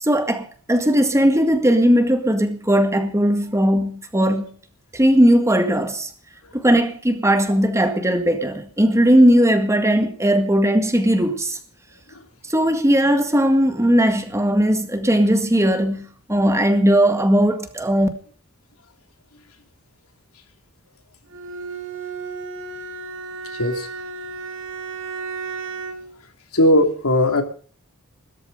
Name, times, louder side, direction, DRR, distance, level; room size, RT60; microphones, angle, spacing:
voice 1, 0.0-4.5 4.9-6.1 6.5-11.6 12.5-18.1, equal, 15° right, 1.9 m, -18 dB
Bowed string instrument, 21.3-26.2, right 4 dB, 60° right, 2.4 m, -33 dB
voice 2, 26.5-27.4, left 1 dB, 85° left, 2.9 m, -17 dB
15.5 x 13.5 x 5.3 m
head